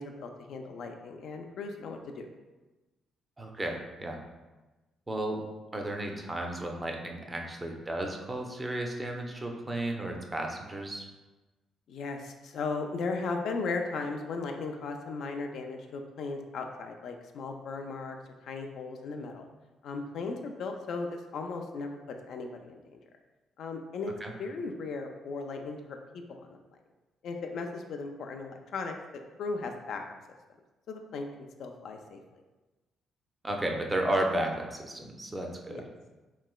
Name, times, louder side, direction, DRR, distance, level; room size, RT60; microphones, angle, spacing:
voice 1, 0.0-2.3 11.9-18.2 18.4-19.5 19.8-22.0 22.3-23.0 23.6-24.1 24.4-26.0 26.3-26.6 27.2-29.0 29.4-30.0 30.9-31.3 31.6-32.2 35.7-35.8, left 4 dB, 70° left, 4 dB, 0.3 m, -36 dB
voice 2, 3.4-4.2 5.1-5.4 5.7-11.0 24.2-24.3 33.4-35.9, right 1 dB, 20° right, 2 dB, 0.4 m, -33 dB
3.0 x 2.9 x 2.3 m, 1.2 s
cardioid pair, 90°, 0 cm